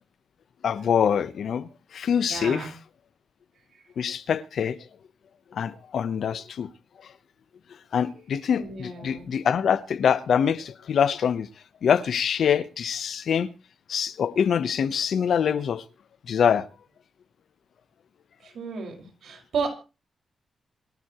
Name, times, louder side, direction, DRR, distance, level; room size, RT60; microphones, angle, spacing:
voice 1, 0.6-2.7 4.0-4.8 5.5-6.7 7.9-11.5 11.8-13.5 13.9-15.8 16.3-16.7, left 7 dB, 70° left, 0.9 m, -24 dB
voice 2, 2.3-2.7 3.7-3.8 8.4-9.3 18.4-19.7, right 5 dB, 80° right, 5.5 m, -33 dB
27.0 x 11.5 x 3.1 m
wide cardioid pair, 150°, 0 cm